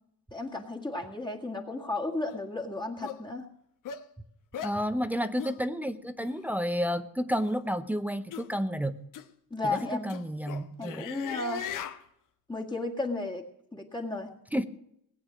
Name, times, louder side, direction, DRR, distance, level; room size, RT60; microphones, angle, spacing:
voice 1, 0.3-3.5 9.5-10.1 10.8-11.7 12.5-13.4 13.7-14.3, left 2 dB, 10° left, 1 dB, 1.9 m, -34 dB
sound 1, 2.3-2.4 3.0-3.2 3.8-4.0 4.5-4.8 5.4-5.6 6.2-6.3 7.3-7.6 8.3-8.5 9.1-9.2 9.7-12.0, left 9 dB, 55° left, 1.2 m, -39 dB
voice 2, 4.6-9.0 9.6-11.0 14.5-14.7, equal, 5° right, 8 dB, 0.6 m, -31 dB
19.0 x 8.9 x 6.2 m, 0.76 s
cardioid pair, 140°, 38 cm